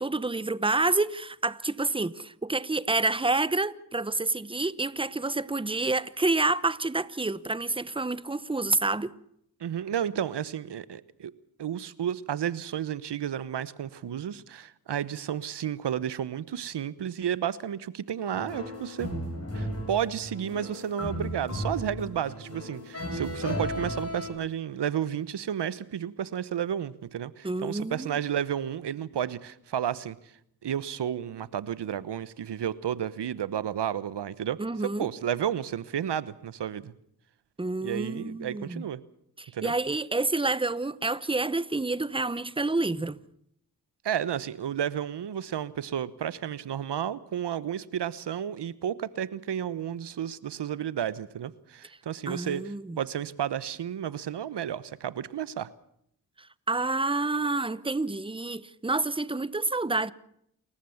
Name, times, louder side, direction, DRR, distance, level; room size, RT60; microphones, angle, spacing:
voice 1, 0.0-9.1 27.4-28.2 34.6-35.1 37.6-38.8 39.4-43.2 52.3-53.0 56.7-60.1, right 2 dB, 15° right, 1.0 m, -28 dB
voice 2, 9.6-11.3 11.6-19.1 19.5-30.3 30.6-36.9 37.8-39.0 39.5-39.7 44.0-55.7, right 9 dB, 80° right, 1.1 m, -32 dB
sound 1, 18.3-24.3, equal, 35° left, 7.8 m, -35 dB
28.5 x 14.5 x 7.2 m
cardioid pair, 45°, 41 cm